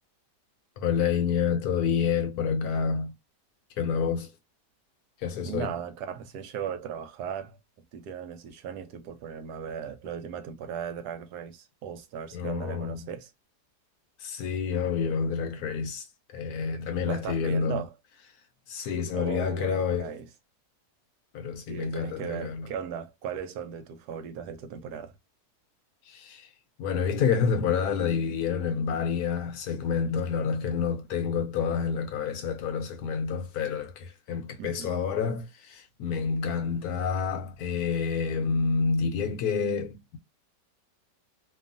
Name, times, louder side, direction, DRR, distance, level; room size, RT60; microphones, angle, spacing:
voice 1, 0.8-3.1 3.8-4.3 5.2-5.7 12.3-13.1 14.2-16.1 16.3-17.8 18.7-20.2 21.3-22.7 26.1-26.5 26.8-40.2, left 6 dB, 70° left, 1.0 m, -28 dB
voice 2, 5.5-7.6 7.9-13.3 17.0-17.9 19.1-20.3 21.7-25.2 34.6-34.9, right 7 dB, 75° right, 1.1 m, -37 dB
3.0 x 2.3 x 2.4 m
omnidirectional pair, 1.9 m